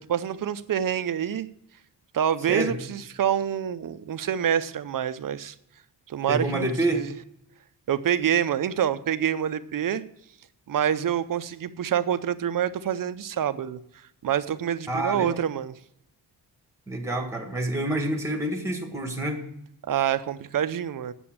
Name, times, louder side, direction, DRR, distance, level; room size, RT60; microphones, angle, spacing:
voice 1, 0.0-1.5 2.1-5.6 6.1-7.1 7.9-10.0 10.7-13.8 14.2-15.8 19.8-21.1, right 9 dB, 50° right, 14 dB, 0.5 m, -26 dB
voice 2, 6.3-7.0 14.9-15.4 16.9-19.4, right 1 dB, 5° right, 3 dB, 1.4 m, -28 dB
8.6 x 6.9 x 8.6 m, 0.77 s
wide cardioid pair, 175°, 42 cm